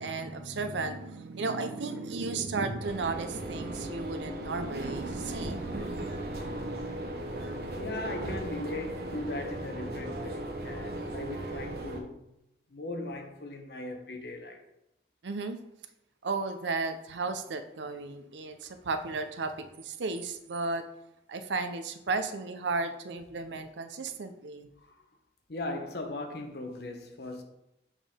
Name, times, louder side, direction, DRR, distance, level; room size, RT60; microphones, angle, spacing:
voice 1, 0.0-7.8 15.2-15.6 16.2-20.8 21.3-24.7, right 3 dB, 90° right, 0.6 m, -34 dB
sound 1, 2.8-12.0, right 1 dB, 60° right, 0.9 m, -37 dB
voice 2, 5.6-7.2 7.6-12.2 12.7-14.6 24.8-25.1 25.5-27.4, left 2 dB, 65° left, 0.8 m, -39 dB
7.1 x 3.7 x 3.6 m
head